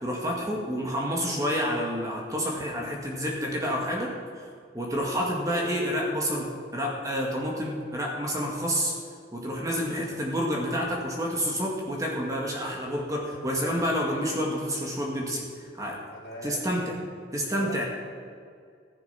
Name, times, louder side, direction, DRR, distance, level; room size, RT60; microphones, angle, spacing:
voice 1, 0.0-4.1 4.7-6.5 6.7-8.9 9.3-15.5 15.7-16.0 16.4-17.0 17.3-17.8, equal, 20° right, -2 dB, 2.0 m, -29 dB
voice 2, 16.1-16.7 17.6-17.9, left 1 dB, 70° left, -4 dB, 4.1 m, -39 dB
14.0 x 10.5 x 5.9 m, 2.2 s
head